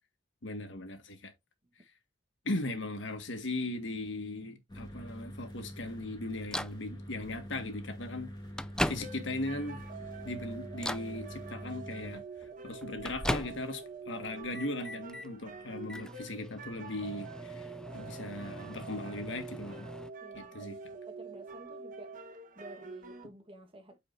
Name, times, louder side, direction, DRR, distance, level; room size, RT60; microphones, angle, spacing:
voice 1, 0.4-1.3 2.4-8.3 8.8-9.8 10.2-12.2 12.6-19.9 20.3-20.8, left 2 dB, 75° left, 1.7 m, -38 dB
sound 1, 4.7-12.2, equal, 25° left, 2.4 m, -45 dB
Microwave oven, 6.5-6.8 7.8-7.9 8.3-9.5 10.0-10.3 10.7-11.1 12.4-13.9 14.2-15.3 15.8-20.1, left 1 dB, 5° left, 0.3 m, -38 dB
sound 2, 9.0-23.2, right 4 dB, 45° right, 1.4 m, -46 dB
voice 2, 20.2-20.8 21.1-22.1 22.5-24.0, right 1 dB, 30° right, 1.4 m, -51 dB
8.7 x 5.1 x 2.6 m
head